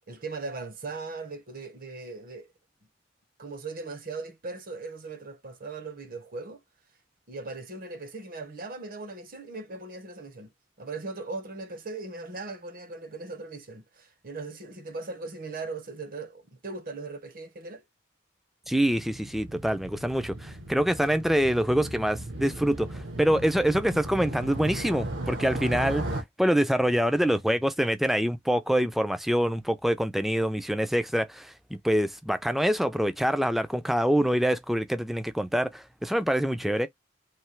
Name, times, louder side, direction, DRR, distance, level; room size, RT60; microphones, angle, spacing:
voice 1, 0.1-2.5 3.4-6.6 7.3-10.5 10.8-17.8, right 3 dB, 45° right, 0.9 m, -39 dB
voice 2, 18.7-26.0 26.4-36.9, equal, ahead, 0.3 m, -25 dB
Motorcycle, 18.7-26.2, right 1 dB, 75° right, 1.2 m, -36 dB
3.3 x 2.7 x 4.4 m
head